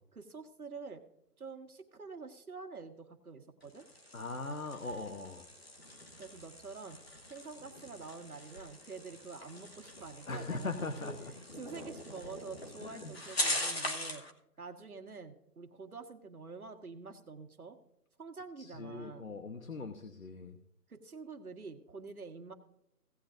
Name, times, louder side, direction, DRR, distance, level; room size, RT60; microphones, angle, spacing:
voice 1, 0.1-1.0 1.4-3.8 6.2-7.0 7.3-10.7 11.0-11.2 11.6-14.2 14.6-17.8 18.2-19.3 20.9-22.5, right 4 dB, 60° right, 5 dB, 1.6 m, -47 dB
sound 1, 3.6-14.3, left 1 dB, 40° left, 1.2 m, -41 dB
voice 2, 4.1-5.5 10.3-11.1 12.8-13.1 18.6-20.6, left 3 dB, 55° left, 7 dB, 1.1 m, -40 dB
17.5 x 8.8 x 2.6 m, 0.76 s
figure-of-eight pair, 175°, 48 cm